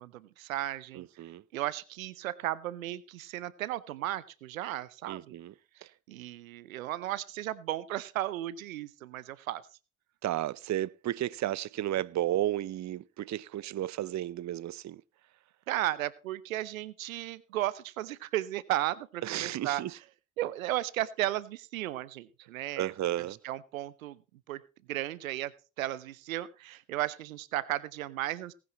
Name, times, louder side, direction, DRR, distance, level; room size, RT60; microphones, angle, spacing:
voice 1, 0.0-1.1 1.5-5.3 6.1-9.6 15.7-19.8 20.4-22.9 23.2-24.2 24.5-24.6 24.9-28.5, right 14 dB, 90° right, 0.7 m, -35 dB
voice 2, 1.0-1.4 5.1-5.5 5.8-5.9 10.2-15.0 19.2-19.9 22.8-23.4, right 13 dB, 45° right, 0.6 m, -33 dB
19.0 x 9.8 x 3.0 m
hypercardioid pair, 45°, 39 cm